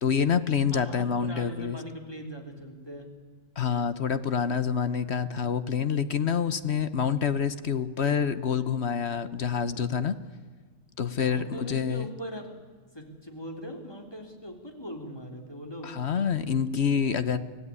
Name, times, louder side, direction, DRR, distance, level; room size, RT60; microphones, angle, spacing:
voice 1, 0.0-1.8 3.6-10.2 11.0-12.1 15.8-17.4, left 7 dB, 50° left, 12 dB, 1.1 m, -27 dB
voice 2, 0.7-3.1 11.2-12.5 12.9-15.9, equal, 15° left, 2 dB, 3.4 m, -40 dB
25.0 x 16.5 x 9.7 m, 1.5 s
omnidirectional pair, 1.6 m